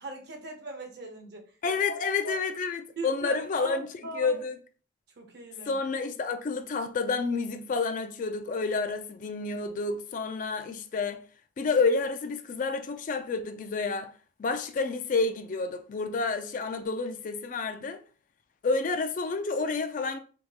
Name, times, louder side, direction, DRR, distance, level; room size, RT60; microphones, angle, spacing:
voice 1, 0.0-1.4 2.2-2.4 3.0-4.4 5.2-5.8, right 2 dB, 55° right, 0.8 m, -39 dB
voice 2, 1.6-3.9 4.1-4.6 5.6-11.2 11.6-14.1 14.4-18.0 18.6-20.2, left 4 dB, 40° left, 0.3 m, -29 dB
3.5 x 2.2 x 2.8 m
head